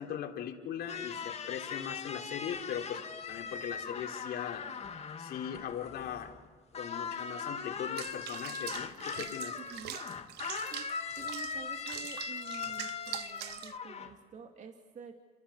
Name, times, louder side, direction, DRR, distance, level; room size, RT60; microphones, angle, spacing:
voice 1, 0.0-4.7 5.2-6.4 6.8-9.6, left 9 dB, 70° left, 3 dB, 3.5 m, -40 dB
sound 1, 0.9-6.5 6.7-14.1, left 6 dB, 40° left, 2.4 m, -40 dB
Water / Bathtub (filling or washing), 8.0-13.8, right 15 dB, 80° right, 0.8 m, -44 dB
voice 2, 9.6-10.0 10.6-10.9 11.2-15.1, right 5 dB, 45° right, 4 dB, 2.4 m, -49 dB
29.5 x 26.5 x 7.2 m, 1.5 s
cardioid pair, 110°, 17 cm